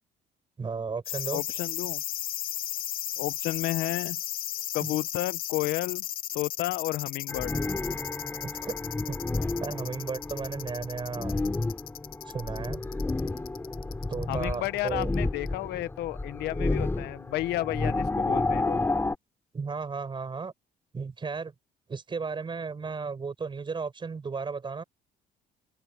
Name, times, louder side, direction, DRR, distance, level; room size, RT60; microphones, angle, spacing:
voice 1, 0.6-1.4 4.8-4.9 8.3-8.8 9.1-9.2 9.6-11.3 12.3-12.9 14.1-15.1 19.5-20.5 20.9-21.5 21.9-24.8, right 5 dB, 30° right, 6.1 m, -34 dB
sound 1, 1.1-15.2 15.5-15.6, left 13 dB, 60° left, 0.6 m, -35 dB
voice 2, 1.3-2.0 3.2-4.2 4.7-6.0 6.3-7.5 14.3-18.8, left 16 dB, 80° left, 1.0 m, -32 dB
sound 2, 7.3-19.1, left 2 dB, 15° left, 3.2 m, -31 dB
open air
cardioid pair, 110°, 17 cm